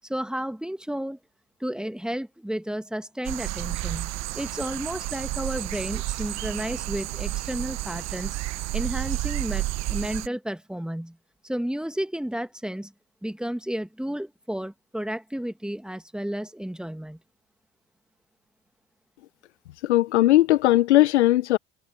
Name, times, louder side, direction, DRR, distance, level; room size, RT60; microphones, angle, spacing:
voice 1, 0.0-1.2 1.6-8.4 8.7-11.2 11.4-12.9 13.2-17.2, equal, ahead, 1.9 m, -32 dB
sound 1, 3.2-10.3, right 18 dB, 50° right, 0.9 m, -31 dB
voice 2, 19.8-21.6, left 15 dB, 75° left, 0.8 m, -18 dB
figure-of-eight pair, 60°, 34 cm